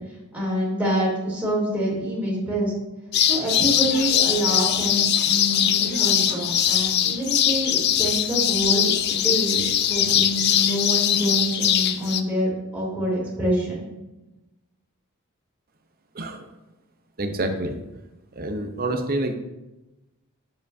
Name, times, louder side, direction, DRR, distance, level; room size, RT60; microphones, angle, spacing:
voice 1, 0.3-2.7 3.3-13.9, right 1 dB, 5° right, -7 dB, 3.0 m, -26 dB
sound 1, 3.1-12.2, left 10 dB, 50° left, 0.4 m, -21 dB
voice 2, 17.2-17.7 18.4-19.4, right 2 dB, 45° right, 5 dB, 0.8 m, -27 dB
9.3 x 7.3 x 2.7 m, 1.0 s
head